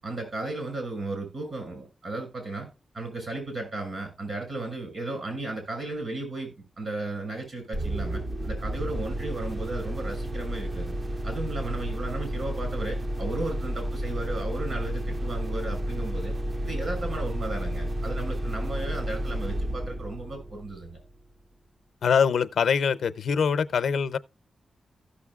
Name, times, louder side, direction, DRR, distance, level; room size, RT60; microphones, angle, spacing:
voice 1, 0.0-2.7 2.9-11.0 11.2-16.3 16.6-21.0, right 2 dB, 55° right, 6.2 m, -35 dB
sound 1, 7.7-21.2, right 1 dB, 30° right, 0.6 m, -31 dB
voice 2, 22.0-24.2, left 6 dB, 80° left, 0.5 m, -23 dB
15.5 x 6.5 x 2.3 m
wide cardioid pair, 105°, 0 cm